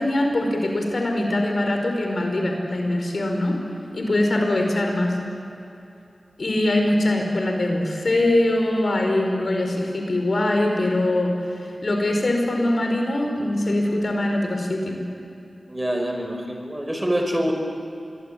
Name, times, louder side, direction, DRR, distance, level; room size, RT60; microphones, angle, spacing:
voice 1, 0.0-3.6 3.9-5.2 6.4-11.4 11.8-15.0, left 1 dB, 65° left, 3 dB, 5.0 m, -22 dB
voice 2, 15.7-17.5, equal, 20° right, 3 dB, 5.3 m, -25 dB
26.0 x 21.5 x 8.7 m, 2.7 s
cardioid pair, 40°, 0 cm